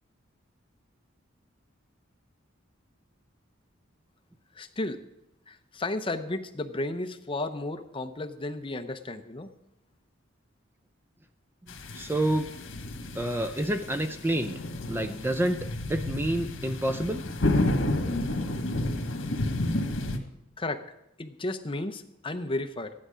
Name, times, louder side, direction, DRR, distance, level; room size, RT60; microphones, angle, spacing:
voice 1, 4.6-5.0 5.5-9.5 20.6-20.8 21.2-22.9, left 2 dB, 25° left, 8 dB, 0.7 m, -33 dB
sound 1, 11.7-20.2, left 1 dB, 80° left, 1.4 m, -31 dB
voice 2, 11.9-12.5 13.2-14.5 14.9-17.2, right 1 dB, 10° right, 7 dB, 0.5 m, -28 dB
14.5 x 10.5 x 5.0 m, 0.84 s
head